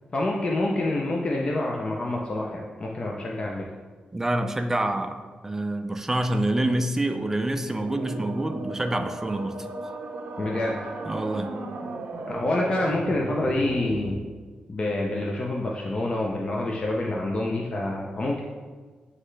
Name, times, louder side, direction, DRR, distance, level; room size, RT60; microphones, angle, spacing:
voice 1, 0.1-3.7 10.4-10.8 12.3-14.2 14.7-18.4, left 2 dB, 35° left, -2 dB, 0.6 m, -27 dB
voice 2, 4.1-9.6 11.1-11.5, right 1 dB, 15° right, 6 dB, 0.4 m, -27 dB
sound 1, 7.6-14.1, right 3 dB, 85° right, 0.7 m, -36 dB
9.5 x 3.2 x 3.3 m, 1.4 s
wide cardioid pair, 135°, 3 cm